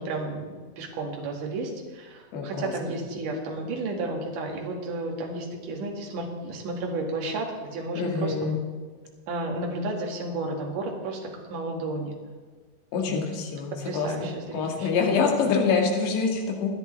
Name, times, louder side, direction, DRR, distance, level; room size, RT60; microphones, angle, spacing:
voice 1, 0.0-8.6 9.3-12.2 13.0-13.3 13.8-15.8, right 2 dB, 55° right, 0 dB, 2.7 m, -33 dB
voice 2, 2.3-2.7 8.0-8.6 12.9-14.3 14.5-16.7, left 5 dB, 70° left, 1 dB, 3.6 m, -25 dB
27.5 x 9.8 x 3.3 m, 1.4 s
omnidirectional pair, 5.6 m